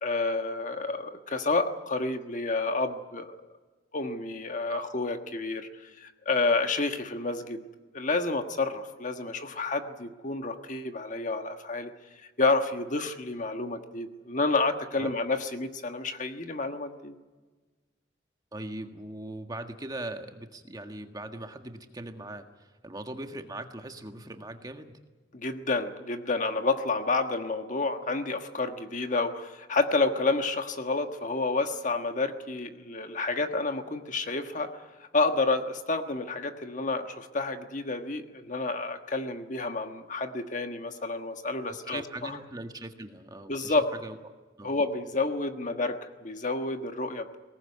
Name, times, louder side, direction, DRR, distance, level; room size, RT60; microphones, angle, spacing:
voice 1, 0.0-3.4 3.9-7.6 7.9-11.9 12.4-17.1 25.3-42.4 43.5-43.9 44.6-47.4, left 3 dB, 45° left, 7 dB, 1.4 m, -29 dB
voice 2, 18.5-25.0 41.9-43.7 44.0-44.2 44.6-44.7, right 1 dB, 20° right, 5 dB, 1.6 m, -40 dB
21.5 x 18.5 x 9.8 m, 1.3 s
head